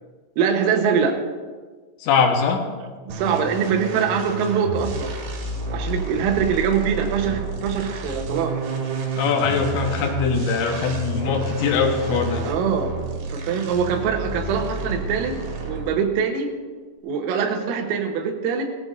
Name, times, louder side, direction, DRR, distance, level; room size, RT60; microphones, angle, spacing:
voice 1, 0.4-1.2 3.1-5.2 5.7-8.6 12.5-12.9 13.3-16.5 17.0-18.6, right 6 dB, 85° right, 3 dB, 3.9 m, -23 dB
voice 2, 2.0-2.6 9.2-12.5, left 5 dB, 70° left, 2 dB, 3.3 m, -21 dB
sound 1, 3.1-16.1, right 3 dB, 60° right, 3.8 m, -30 dB
18.5 x 15.0 x 2.7 m, 1.4 s
omnidirectional pair, 5.9 m